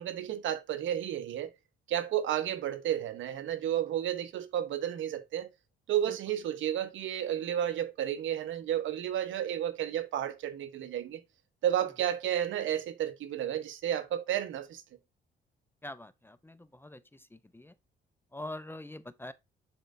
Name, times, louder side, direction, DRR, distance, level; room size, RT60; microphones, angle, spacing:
voice 1, 0.0-1.5 1.9-5.5 5.9-11.2 11.6-14.8, right 11 dB, 80° right, 1.0 m, -32 dB
voice 2, 15.8-17.0 17.5-17.7 18.3-19.3, left 1 dB, 10° left, 0.6 m, -43 dB
10.0 x 4.4 x 2.6 m
cardioid pair, 90°, 20 cm